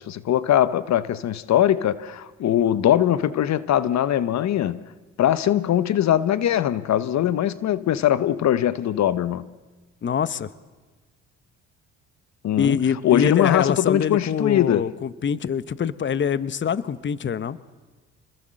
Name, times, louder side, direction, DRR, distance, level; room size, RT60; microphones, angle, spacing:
voice 1, 0.0-4.8 5.2-9.5 12.4-12.8 13.0-14.9, left 11 dB, 65° left, 0.9 m, -21 dB
voice 2, 10.0-10.5 12.6-17.6, left 7 dB, 40° left, 0.9 m, -24 dB
26.5 x 20.5 x 7.6 m
cardioid pair, 90°, 30 cm